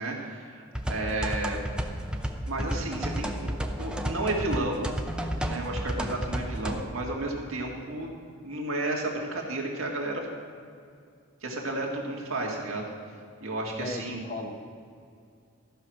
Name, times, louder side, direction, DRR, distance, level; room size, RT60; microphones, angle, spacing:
voice 1, 0.0-1.6 2.5-4.9 5.4-8.1 8.4-10.2 11.4-12.9 13.4-14.3, right 2 dB, 85° right, -1 dB, 2.0 m, -32 dB
sound 1, 0.7-6.8, equal, 5° right, 0.6 m, -32 dB
voice 2, 13.8-14.5, left 2 dB, 35° left, 4 dB, 0.9 m, -36 dB
13.5 x 5.9 x 6.3 m, 2.3 s
head